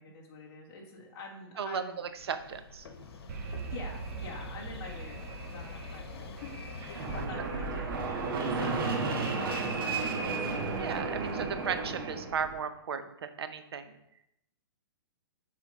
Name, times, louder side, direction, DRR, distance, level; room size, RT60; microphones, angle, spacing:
voice 1, 0.0-2.1 3.7-6.5 6.8-8.8 9.1-9.3 9.8-10.4, left 3 dB, 30° left, -4 dB, 1.7 m, -46 dB
voice 2, 1.6-2.9 6.9-7.0 10.8-14.0, right 6 dB, 85° right, 9 dB, 0.7 m, -36 dB
sound 1, 2.1-7.3, left 4 dB, 90° left, 1.0 m, -45 dB
Alarm, 3.3-11.0, right 5 dB, 40° right, 0.7 m, -45 dB
Fixed-wing aircraft airplane, 7.0-12.6, right 3 dB, 65° right, 1.2 m, -32 dB
7.5 x 3.4 x 4.0 m, 0.81 s
hypercardioid pair, 155°, 13 cm